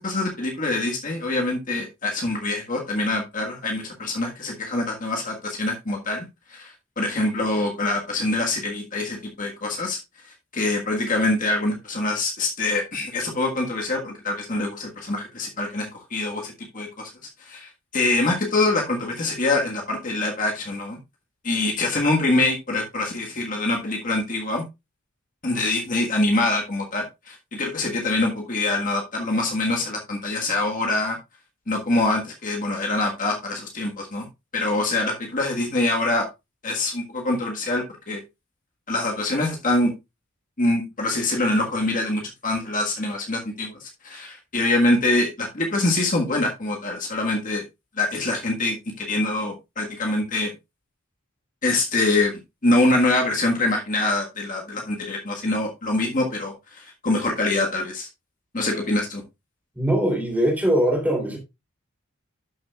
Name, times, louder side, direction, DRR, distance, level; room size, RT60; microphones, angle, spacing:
voice 1, 0.0-10.0 10.2-17.1 17.4-21.0 21.4-24.6 25.4-31.2 31.7-34.3 34.5-36.2 36.6-38.2 38.9-39.9 40.6-47.6 47.9-50.5 51.6-58.1 58.5-59.2, left 2 dB, 40° left, 1.6 m, -24 dB
voice 2, 59.7-61.4, right 1 dB, 5° right, 3.1 m, -21 dB
12.0 x 6.1 x 2.4 m
head